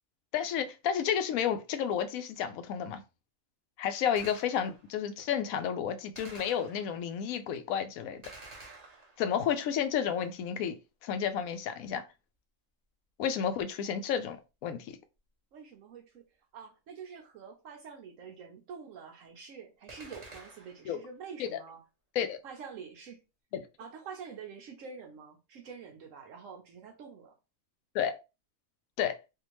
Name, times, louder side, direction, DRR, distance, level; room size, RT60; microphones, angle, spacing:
voice 1, 0.3-3.0 3.8-8.2 9.2-10.8 11.0-12.0 13.2-14.4 14.6-15.0 20.9-21.0 21.4-21.6 22.2-22.4 23.5-23.6 27.9-28.1 29.0-29.1, left 8 dB, 80° left, 1.0 m, -31 dB
Gunshot gunfire, 4.2-5.0 6.2-7.1 8.2-9.5 19.9-21.0, right 2 dB, 35° right, 0.8 m, -50 dB
voice 2, 15.5-16.2 16.5-21.8 22.4-23.2 23.8-27.3, right 6 dB, 70° right, 1.0 m, -47 dB
3.5 x 2.4 x 3.0 m
omnidirectional pair, 1.4 m